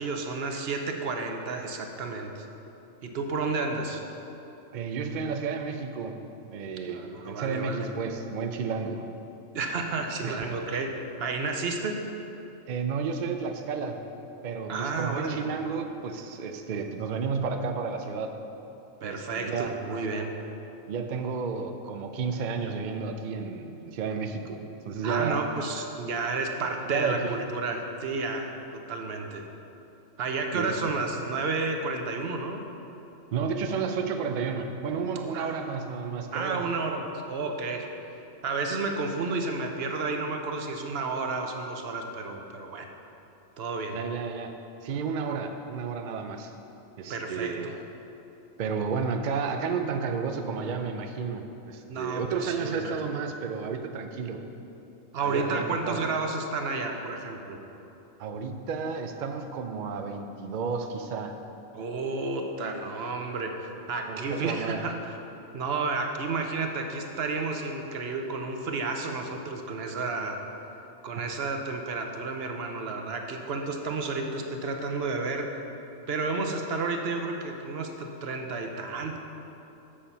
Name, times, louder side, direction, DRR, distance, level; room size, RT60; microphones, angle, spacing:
voice 1, 0.0-2.5 3.0-4.0 6.9-7.9 9.5-10.9 11.2-12.0 14.7-15.5 19.0-20.3 25.0-29.4 30.2-32.6 35.3-35.7 36.3-37.9 38.4-42.9 43.6-44.0 47.1-47.8 51.9-53.0 55.1-57.6 61.7-65.0 65.5-70.4 71.0-75.5 76.1-79.2, right 3 dB, 55° right, 4 dB, 0.9 m, -31 dB
voice 2, 4.7-9.0 10.2-10.5 12.7-14.0 14.4-18.4 19.0-19.8 20.9-25.4 26.9-27.4 30.5-30.9 33.3-36.7 43.9-44.5 44.8-46.5 47.0-47.7 48.6-54.4 55.2-56.0 58.2-61.4 64.1-64.8 71.1-71.3, right 5 dB, 75° right, 6 dB, 0.4 m, -32 dB
7.4 x 6.7 x 5.5 m, 2.9 s
omnidirectional pair, 1.4 m